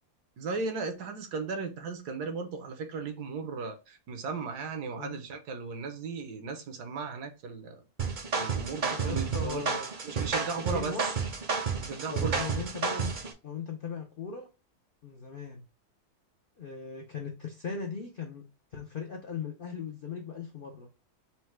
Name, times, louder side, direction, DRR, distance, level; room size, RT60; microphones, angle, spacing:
voice 1, 0.4-7.8 8.4-9.6 10.0-10.9 11.8-12.4, right 4 dB, 80° right, 1.4 m, -36 dB
sound 1, 8.0-13.3, right 5 dB, 45° right, 0.6 m, -31 dB
voice 2, 8.9-9.9 10.7-11.3 12.1-13.2 13.4-14.5 15.0-15.6 16.6-18.5 18.7-20.9, left 5 dB, 70° left, 0.5 m, -38 dB
4.3 x 2.2 x 4.4 m
omnidirectional pair, 1.7 m